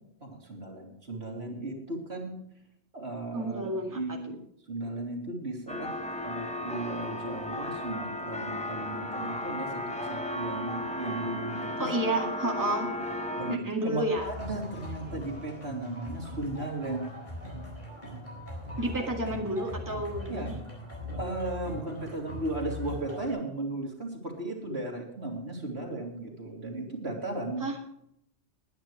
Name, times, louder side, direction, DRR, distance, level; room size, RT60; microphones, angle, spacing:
voice 1, 0.2-2.4 2.9-4.4 4.7-5.9 6.2-11.9 13.4-17.1 18.7-18.9 20.2-20.5 21.1-27.7, right 2 dB, 70° right, 0 dB, 3.6 m, -36 dB
voice 2, 3.3-4.2 11.8-12.9 13.5-14.3 18.8-20.5 27.6-27.7, right 1 dB, 15° right, 1 dB, 2.1 m, -30 dB
sound 1, 5.7-13.6, left 1 dB, 5° left, 1.0 m, -34 dB
sound 2, 14.2-23.3, left 1 dB, 45° left, 4.6 m, -40 dB
20.5 x 10.5 x 3.2 m, 0.73 s
omnidirectional pair, 1.1 m